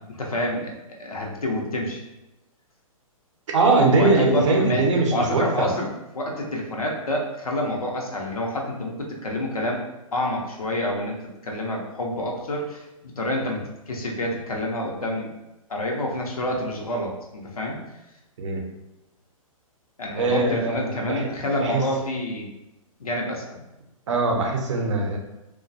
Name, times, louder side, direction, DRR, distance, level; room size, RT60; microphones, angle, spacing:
voice 1, 0.1-2.0 3.9-4.9 5.1-5.9 6.1-9.8 10.1-11.2 11.4-15.3 15.7-17.8 20.0-22.5 23.0-23.6, left 1 dB, 80° left, -1 dB, 0.7 m, -28 dB
voice 2, 3.5-5.7 18.4-18.6 20.1-21.3 21.6-21.8 24.1-25.2, right 3 dB, 60° right, 1 dB, 0.6 m, -21 dB
2.2 x 2.2 x 2.6 m, 0.94 s
figure-of-eight pair, 120°, 18 cm